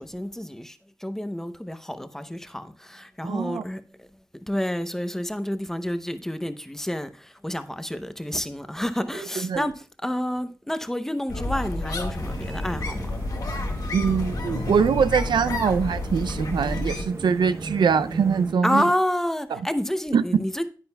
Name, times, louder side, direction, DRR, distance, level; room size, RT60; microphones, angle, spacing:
voice 1, 0.0-4.1 4.5-13.1 18.6-20.6, left 1 dB, 5° left, 0.7 m, -29 dB
voice 2, 3.2-3.6 9.4-9.7 13.9-18.8 20.1-20.4, right 6 dB, 70° right, 0.5 m, -23 dB
sound 1, 11.3-17.0, left 2 dB, 50° left, 1.5 m, -30 dB
sound 2, 12.2-18.5, right 3 dB, 35° right, 0.9 m, -36 dB
10.0 x 9.7 x 2.3 m
wide cardioid pair, 130°, 8 cm